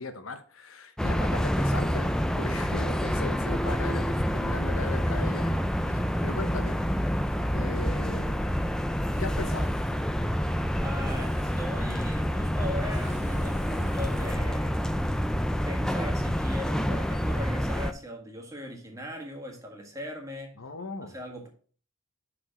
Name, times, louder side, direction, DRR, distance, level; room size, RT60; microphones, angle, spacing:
voice 1, 0.0-5.6 5.8-6.8 7.5-8.5 9.2-9.7 20.6-21.1, left 3 dB, 85° left, 8 dB, 1.0 m, -38 dB
sound 1, 1.0-17.9, equal, 5° left, 0.4 m, -27 dB
sound 2, 9.1-10.1 11.1-11.8 12.9-14.3, right 1 dB, 35° right, 1.5 m, -50 dB
voice 2, 10.8-14.8 15.6-20.5 21.0-21.5, equal, 15° right, 1 dB, 1.6 m, -39 dB
6.2 x 4.9 x 5.9 m, 0.43 s
head